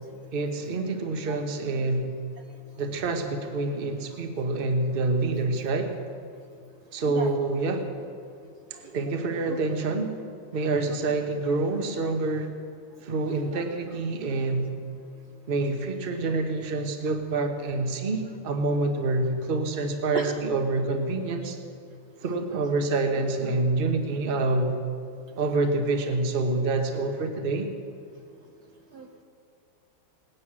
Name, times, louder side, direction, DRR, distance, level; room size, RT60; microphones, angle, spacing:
voice 1, 0.3-2.1 2.8-5.9 6.9-7.9 8.9-10.1 10.5-12.5 13.0-14.7 15.5-21.6 22.2-24.8 25.4-27.7, right 3 dB, 35° right, 5 dB, 1.0 m, -27 dB
voice 2, 7.1-7.4 8.8-9.0 9.5-9.6 10.9-11.0 13.3-13.6 20.1-20.3 28.9-29.2, right 5 dB, 60° right, 2 dB, 1.2 m, -36 dB
19.0 x 9.6 x 6.1 m, 2.5 s
omnidirectional pair, 2.2 m